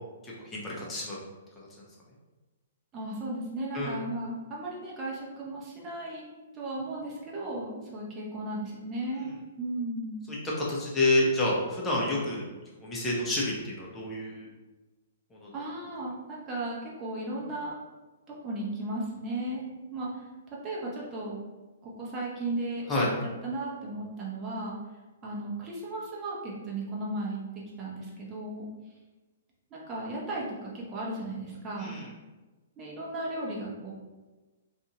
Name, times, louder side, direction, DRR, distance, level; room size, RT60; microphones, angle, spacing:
voice 1, 0.2-1.2 1.6-1.7 3.7-4.0 10.3-12.4 12.8-14.5 15.3-15.5 22.9-23.1 31.8-32.1, left 2 dB, 15° left, -5 dB, 0.8 m, -29 dB
voice 2, 2.9-6.2 6.5-10.2 15.5-17.8 18.3-19.6 19.9-20.2 20.6-21.4 21.8-23.1 23.4-24.8 25.2-28.7 29.7-32.0 32.8-33.9, right 1 dB, 25° right, -4 dB, 0.8 m, -35 dB
2.5 x 2.5 x 2.9 m, 1.2 s
figure-of-eight pair, 115°, 0 cm